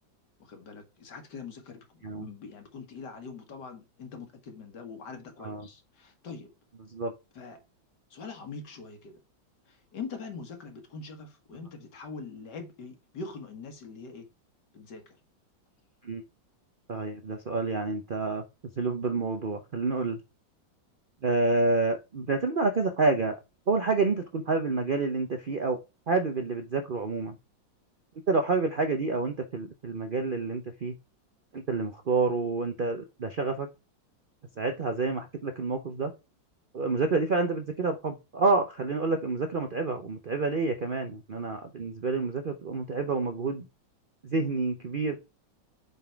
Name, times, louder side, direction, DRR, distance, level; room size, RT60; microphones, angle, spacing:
voice 1, 0.4-6.5 7.3-7.6 8.1-9.2 9.7-14.3 14.7-15.2, left 4 dB, 65° left, 2.1 m, -43 dB
voice 2, 16.9-18.4 18.8-20.2 21.2-23.3 23.7-25.8 26.1-27.4 28.3-30.9 31.5-33.7 34.6-36.1 36.7-43.7 44.2-45.2, right 3 dB, 75° right, 0.4 m, -28 dB
8.0 x 4.1 x 4.5 m
omnidirectional pair, 2.1 m